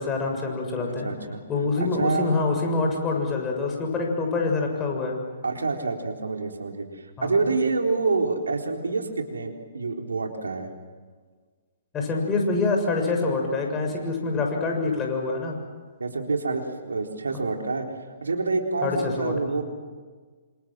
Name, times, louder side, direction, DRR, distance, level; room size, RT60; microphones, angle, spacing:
voice 1, 0.0-1.1 1.5-5.2 7.2-7.4 11.9-15.6 18.8-19.6, left 3 dB, 20° left, 1 dB, 7.0 m, -26 dB
voice 2, 0.8-1.4 2.0-2.3 5.4-10.7 16.0-17.9 18.2-19.6, right 3 dB, 80° right, 3 dB, 3.8 m, -27 dB
28.5 x 27.0 x 7.7 m, 1.5 s
figure-of-eight pair, 125°, 0 cm